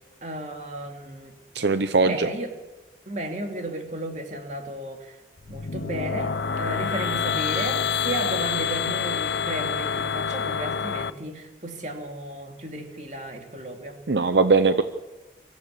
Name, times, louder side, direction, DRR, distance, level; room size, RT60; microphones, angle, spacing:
voice 1, 0.2-1.3 2.0-2.5 3.1-5.2 5.5-14.0, right 1 dB, 40° right, 3 dB, 2.7 m, -34 dB
voice 2, 1.5-2.3 14.1-14.8, right 4 dB, 80° right, 10 dB, 0.7 m, -20 dB
sound 1, 5.4-11.1, left 6 dB, 80° left, 0.6 m, -27 dB
24.5 x 15.5 x 6.9 m, 1.1 s
head